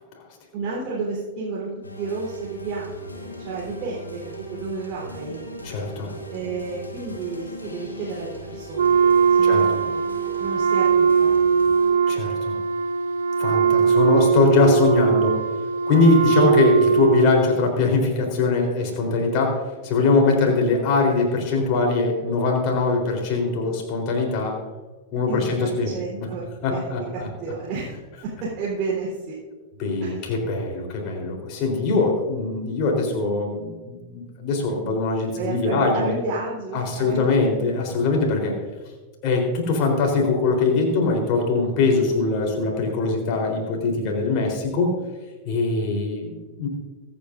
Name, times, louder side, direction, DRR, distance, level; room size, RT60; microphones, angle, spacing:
voice 1, 0.5-5.4 6.3-9.0 9.3-11.4 25.3-27.9 28.4-29.4 30.0-30.2 35.4-37.3, right 4 dB, 35° right, -6 dB, 3.8 m, -32 dB
sound 1, 1.8-11.9, right 1 dB, 80° left, 2.4 m, -38 dB
voice 2, 5.6-6.1 9.5-9.8 12.1-12.6 13.4-15.3 15.9-19.6 19.8-24.5 25.1-25.9 26.2-26.3 26.6-27.3 29.8-36.1 36.7-38.5 39.2-44.9 45.4-46.7, left 3 dB, 40° left, 1 dB, 3.9 m, -22 dB
Wind instrument woodwind instrument, 8.7-17.6, right 6 dB, 65° right, 0.8 m, -20 dB
24.5 x 9.3 x 2.6 m, 1.3 s
figure-of-eight pair, 90°, 0 cm